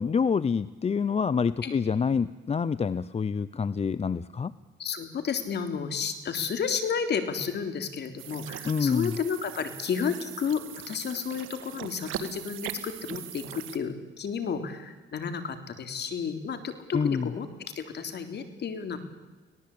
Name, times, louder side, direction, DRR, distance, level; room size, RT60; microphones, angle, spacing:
voice 1, 0.0-4.5 8.6-9.1 16.9-17.3, left 6 dB, 30° left, 17 dB, 0.7 m, -27 dB
voice 2, 4.8-17.5 17.8-19.0, left 6 dB, 60° left, 8 dB, 3.5 m, -32 dB
sound 1, 8.2-13.8, right 11 dB, 80° right, 2.0 m, -40 dB
25.5 x 18.5 x 8.6 m, 1.2 s
cardioid pair, 90°, 20 cm